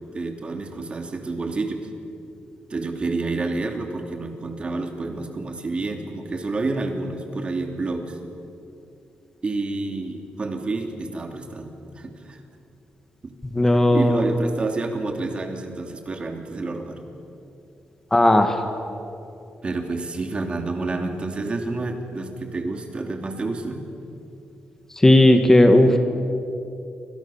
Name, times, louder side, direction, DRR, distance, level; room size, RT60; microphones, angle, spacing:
voice 1, 0.1-1.9 2.7-8.2 9.4-12.4 13.2-13.4 13.9-17.0 19.6-23.8, right 3 dB, 35° right, 4 dB, 3.1 m, -29 dB
voice 2, 13.5-14.3 18.1-18.6 25.0-26.0, left 1 dB, 15° left, 6 dB, 1.8 m, -15 dB
28.5 x 25.5 x 7.3 m, 2.7 s
wide cardioid pair, 130°, 3 cm